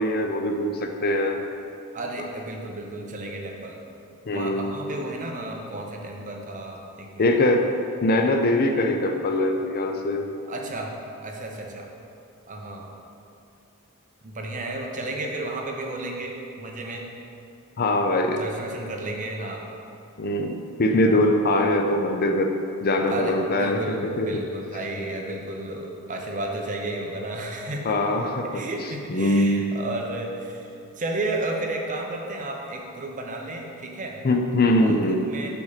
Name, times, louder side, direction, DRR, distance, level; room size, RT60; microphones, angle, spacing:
voice 1, 0.0-1.4 4.3-4.7 7.2-7.7 8.0-10.3 17.8-18.4 20.2-22.5 22.8-23.8 24.2-24.3 27.8-28.6 29.1-29.7 34.2-35.3, left 1 dB, 45° left, 4 dB, 0.5 m, -22 dB
voice 2, 1.9-3.8 4.3-7.4 10.5-10.9 11.2-11.9 12.5-12.9 14.2-17.0 18.4-19.6 23.1-28.0 28.5-30.7 31.0-34.2 34.8-35.5, right 2 dB, 35° right, 1 dB, 0.8 m, -32 dB
6.9 x 5.8 x 4.0 m, 2.6 s
head